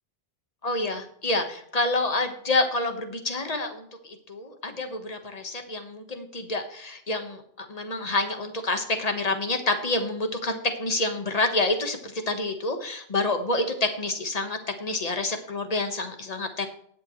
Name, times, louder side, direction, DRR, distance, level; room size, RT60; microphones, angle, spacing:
voice 1, 0.6-16.7, left 2 dB, 40° left, 6 dB, 1.4 m, -28 dB
19.0 x 6.9 x 3.1 m, 0.68 s
omnidirectional pair, 1.1 m